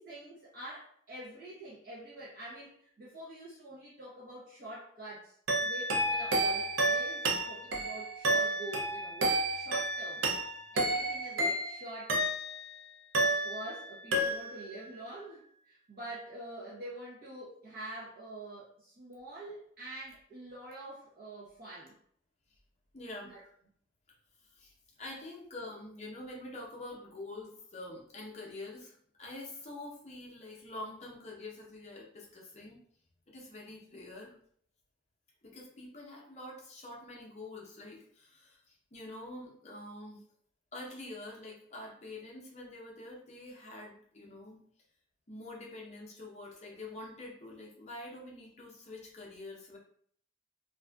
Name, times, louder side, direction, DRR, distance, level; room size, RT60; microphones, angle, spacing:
voice 1, 0.0-10.2 10.7-12.2 13.2-21.9 23.2-23.4, right 1 dB, 50° right, -8 dB, 0.7 m, -46 dB
sound 1, 5.5-12.7 13.1-13.8 14.1-14.7, right 1 dB, 90° right, 0.5 m, -31 dB
voice 2, 22.9-23.3 24.5-32.8 33.3-34.4 35.4-40.2 40.7-44.6 45.3-49.8, left 2 dB, 35° left, -2 dB, 0.6 m, -46 dB
2.5 x 2.3 x 2.2 m, 0.62 s
head